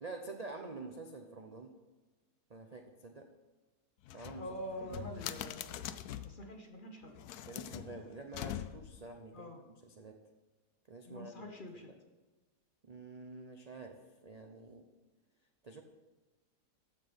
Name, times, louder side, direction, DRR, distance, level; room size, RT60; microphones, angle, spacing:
voice 1, 0.0-1.8 2.5-3.3 4.1-5.1 7.5-9.5 9.8-10.2 10.9-11.5 12.8-14.9 15.6-15.8, right 3 dB, 40° right, 3 dB, 0.6 m, -48 dB
sound 1, 4.0-6.4 7.1-9.0, left 11 dB, 75° left, 1.1 m, -43 dB
voice 2, 4.4-5.8 6.2-7.1 9.3-9.6 11.1-11.9, equal, 35° left, 3 dB, 1.1 m, -45 dB
14.5 x 6.1 x 5.2 m, 1.2 s
omnidirectional pair, 1.7 m